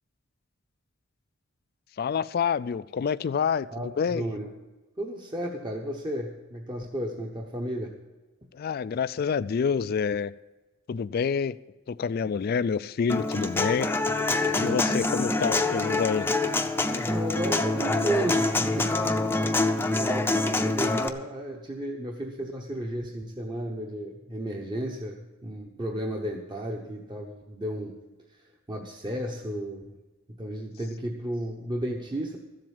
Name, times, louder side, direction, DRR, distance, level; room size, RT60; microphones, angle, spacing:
voice 1, 2.0-4.3 8.5-10.3 10.9-11.6 11.9-13.9 14.3-16.3, left 6 dB, 50° left, 16 dB, 0.3 m, -27 dB
voice 2, 3.7-4.5 5.0-7.9 14.4-14.8 16.8-19.0 19.5-27.9 28.7-30.0 30.3-32.4, right 1 dB, 20° right, 0 dB, 0.9 m, -33 dB
Human voice / Acoustic guitar, 13.1-21.1, left 2 dB, 10° left, 0.6 m, -26 dB
13.5 x 7.7 x 7.2 m, 1.2 s
head